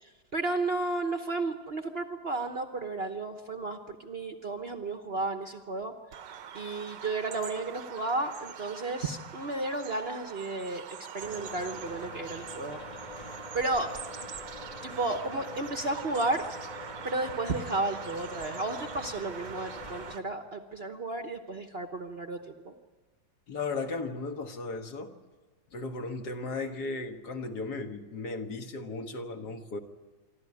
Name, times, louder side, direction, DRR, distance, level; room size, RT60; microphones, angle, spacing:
voice 1, 0.0-5.9 6.5-10.8 11.1-12.8 13.5-13.9 14.8-16.4 17.0-22.7, right 2 dB, 40° right, 6 dB, 1.0 m, -33 dB
Bird vocalization bird call bird song, 6.1-20.2, right 8 dB, 70° right, 1.5 m, -44 dB
sound 1, 11.2-20.2, left 3 dB, 25° left, 1.4 m, -45 dB
voice 2, 23.5-25.1 25.7-29.8, left 3 dB, 60° left, 5 dB, 2.0 m, -36 dB
26.5 x 12.5 x 9.6 m, 1.4 s
omnidirectional pair, 2.0 m